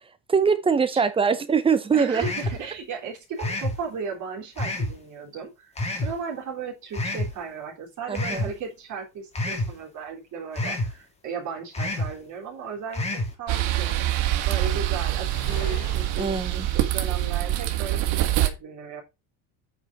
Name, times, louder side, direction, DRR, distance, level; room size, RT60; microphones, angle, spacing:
voice 1, 0.3-2.2 8.1-8.5 16.2-16.7, right 5 dB, 10° right, 0.6 m, -22 dB
voice 2, 1.9-14.1 14.5-16.4 16.7-19.0, right 5 dB, 40° right, 3.5 m, -36 dB
sound 1, 2.2-2.6 3.4-3.8 4.6-4.9 5.8-6.1 6.9-7.3 8.1-8.5 9.3-9.7 10.5-10.9 11.7-12.1 12.9-13.3, left 2 dB, 15° left, 1.9 m, -28 dB
sound 2, 8.7-8.8 13.9-16.9, left 6 dB, 45° left, 2.4 m, -44 dB
sound 3, 13.5-18.5, right 14 dB, 90° right, 1.9 m, -25 dB
8.7 x 5.0 x 5.9 m
cardioid pair, 180°, 45 cm